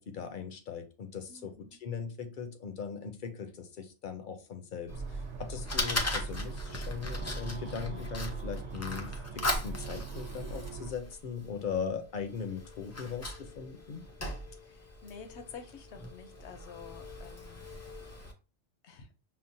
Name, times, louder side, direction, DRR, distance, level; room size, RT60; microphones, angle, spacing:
voice 1, 0.0-1.5 1.8-14.0, left 6 dB, 55° left, 6 dB, 0.7 m, -39 dB
voice 2, 1.3-1.8 14.6-17.6 18.8-19.1, left 5 dB, 75° left, 8 dB, 1.0 m, -49 dB
Fire, 4.9-18.3, left 1 dB, 25° left, 0.4 m, -39 dB
sound 1, 4.9-10.9, right 3 dB, 65° right, 0.9 m, -40 dB
sound 2, 7.1-11.5, right 1 dB, 45° right, 1.2 m, -56 dB
5.7 x 2.1 x 2.6 m, 0.32 s
omnidirectional pair, 1.2 m